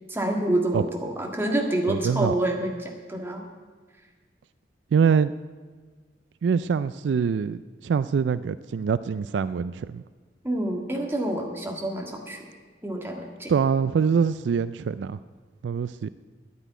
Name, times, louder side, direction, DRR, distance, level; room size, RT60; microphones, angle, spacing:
voice 1, 0.1-3.4 10.4-12.4 12.8-13.5, right 1 dB, 15° right, 1 dB, 1.8 m, -27 dB
voice 2, 1.9-2.3 4.9-5.3 6.4-10.0 13.5-15.2 15.6-16.1, right 6 dB, 70° right, 15 dB, 0.3 m, -24 dB
10.0 x 9.7 x 9.2 m, 1.4 s
head